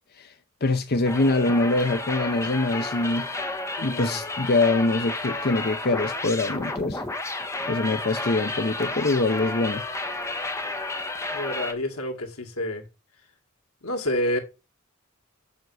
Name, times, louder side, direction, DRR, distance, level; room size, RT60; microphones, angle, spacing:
voice 1, 0.6-3.3 3.8-7.0 7.3-7.4 7.7-9.8, left 2 dB, 45° left, 0.6 m, -24 dB
sound 1, 1.0-11.7, left 2 dB, 15° left, 0.9 m, -31 dB
voice 2, 3.8-4.2 11.3-12.9 13.8-14.4, left 1 dB, 85° left, 2.2 m, -29 dB
7.1 x 5.3 x 6.2 m
head